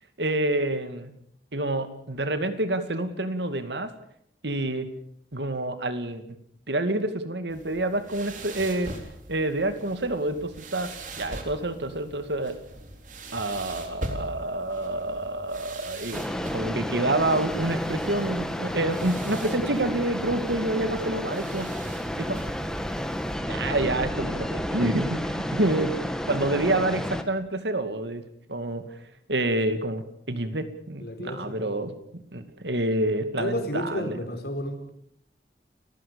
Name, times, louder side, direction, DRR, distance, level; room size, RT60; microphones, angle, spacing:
voice 1, 0.2-1.1 1.5-3.9 4.4-4.9 5.3-6.4 6.7-8.9 9.3-12.6 13.3-16.2 16.5-21.7 22.2-22.4 23.5-28.2 28.5-28.8 29.3-34.1, right 1 dB, 85° right, 10 dB, 2.5 m, -28 dB
sound 1, 7.5-23.3, right 2 dB, 45° right, 3.8 m, -42 dB
sound 2, 16.1-27.2, equal, 5° left, 1.6 m, -31 dB
voice 2, 31.0-31.7 33.4-34.9, equal, 65° left, 5 dB, 4.8 m, -31 dB
30.0 x 15.5 x 7.0 m, 0.70 s
head